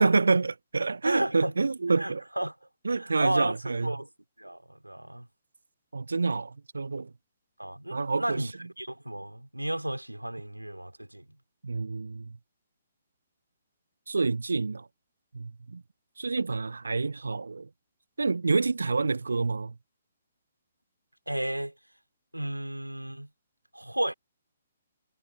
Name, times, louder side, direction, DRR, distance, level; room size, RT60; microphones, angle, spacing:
voice 1, 0.0-2.2 2.8-4.0 5.9-7.1 7.9-8.5 11.6-12.4 14.1-14.9 15.3-15.8 16.2-17.7 18.2-19.7, right 4 dB, 70° right, 0.7 m, -27 dB
voice 2, 1.0-1.5 2.0-2.5 2.9-4.1 4.4-5.3 7.6-11.2 21.3-21.7 22.3-23.3 23.7-24.1, right 1 dB, 85° right, 3.3 m, -33 dB
figure-of-eight pair, 130°, 0 cm